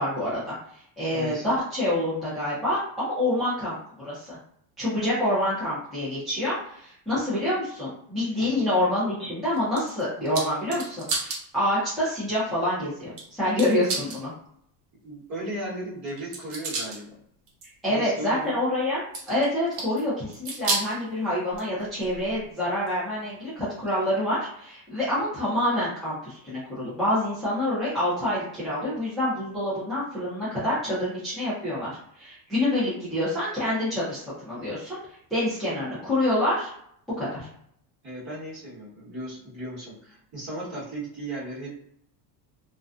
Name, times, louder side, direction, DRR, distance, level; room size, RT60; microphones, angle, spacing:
voice 1, 0.0-4.4 4.8-14.3 17.8-19.0 19.3-35.0 35.3-36.7 37.2-37.5, left 1 dB, ahead, -11 dB, 0.6 m, -27 dB
voice 2, 1.1-1.5 8.4-8.7 15.0-17.2 17.9-18.5 38.0-41.7, right 1 dB, 35° right, -7 dB, 1.2 m, -36 dB
sound 1, 9.5-11.4 11.9-12.0 13.2-13.3 13.6-14.2 16.1-17.0 17.5-17.7 19.1-20.0 20.3-21.0 21.5-22.4 22.9-23.0 23.9-24.0, right 3 dB, 70° right, 1.1 m, -31 dB
2.4 x 2.2 x 2.5 m, 0.69 s
cardioid pair, 170°, 47 cm